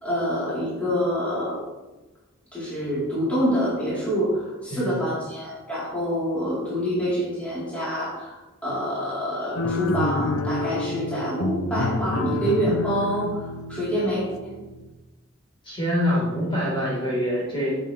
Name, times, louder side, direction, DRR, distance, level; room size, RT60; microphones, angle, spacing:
voice 1, 0.0-1.6 2.5-13.4 13.7-14.3, equal, 5° left, -10 dB, 4.2 m, -26 dB
sound 1, 9.6-14.9, left 2 dB, 90° left, 0.8 m, -28 dB
voice 2, 15.6-17.8, equal, 25° left, -5 dB, 4.6 m, -25 dB
17.0 x 8.1 x 3.5 m, 1.1 s
head